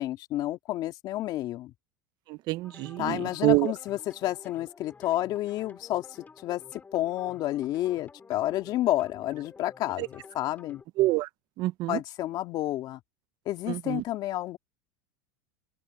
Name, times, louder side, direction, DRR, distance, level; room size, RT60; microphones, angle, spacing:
voice 1, 0.0-1.7 3.0-6.1 6.4-10.8 11.9-13.0 13.5-14.6, left 14 dB, 45° left, 2.2 m, -30 dB
voice 2, 2.5-3.7 11.0-11.3 11.6-11.9 13.7-14.0, right 19 dB, 45° right, 0.7 m, -26 dB
sound 1, 2.6-10.8, left 4 dB, 15° left, 5.0 m, -51 dB
open air
supercardioid pair, 125°, 10 cm